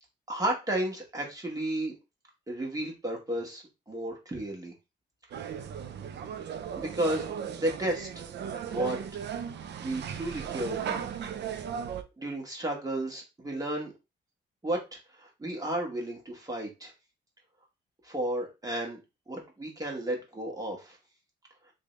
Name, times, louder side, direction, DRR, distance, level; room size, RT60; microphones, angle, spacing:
voice 1, 0.3-1.9 2.5-4.7 6.8-8.1 8.6-9.2 9.8-11.1 12.2-13.9 14.6-16.9 18.0-19.0 19.3-21.0, right 1 dB, 20° right, -1 dB, 1.5 m, -33 dB
sound 1, 5.3-12.0, right 8 dB, 60° right, 0.6 m, -36 dB
3.3 x 2.7 x 3.2 m, 0.26 s
cardioid pair, 90°, 20 cm